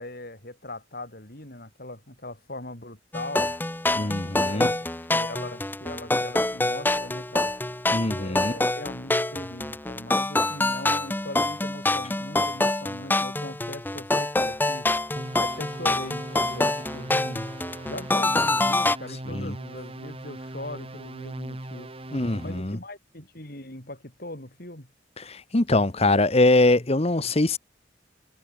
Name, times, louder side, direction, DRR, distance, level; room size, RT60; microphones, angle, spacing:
voice 1, 0.0-3.5 4.4-7.5 8.1-14.9 15.4-17.5 17.9-21.9 22.4-24.9, left 1 dB, 55° left, 7.0 m, -40 dB
sound 1, 3.1-19.0, left 2 dB, 10° left, 0.8 m, -26 dB
voice 2, 3.9-4.7 7.9-8.5 19.3-19.5 22.1-22.8 25.2-27.6, left 2 dB, 35° left, 1.2 m, -23 dB
sound 2, 15.2-22.7, right 1 dB, 30° right, 1.6 m, -39 dB
head